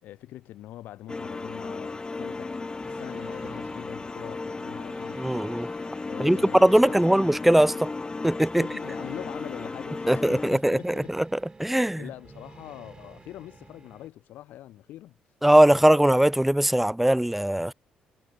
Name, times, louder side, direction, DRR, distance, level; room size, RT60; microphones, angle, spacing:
voice 1, 0.0-5.5 6.1-7.1 8.5-11.1 12.0-15.1, left 14 dB, 75° left, 3.7 m, -43 dB
sound 1, 1.1-10.5, left 3 dB, 25° left, 1.1 m, -35 dB
sound 2, 2.7-14.1, right 3 dB, 25° right, 4.2 m, -50 dB
voice 2, 5.2-5.7 6.2-7.9 8.2-8.7 10.1-11.3 11.6-12.0 15.4-17.7, right 1 dB, 5° right, 0.5 m, -20 dB
supercardioid pair, 60°, 3 cm